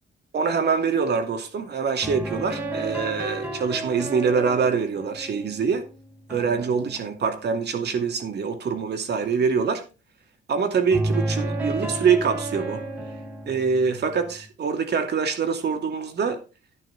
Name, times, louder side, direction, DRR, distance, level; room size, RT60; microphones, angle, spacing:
voice 1, 0.3-5.8 6.3-9.8 10.5-12.8 13.5-16.4, right 5 dB, 55° right, 2.6 m, -24 dB
sound 1, 2.0-7.9 10.9-14.5, right 2 dB, 10° right, 4.1 m, -32 dB
10.5 x 10.5 x 3.6 m
cardioid pair, 90°, 20 cm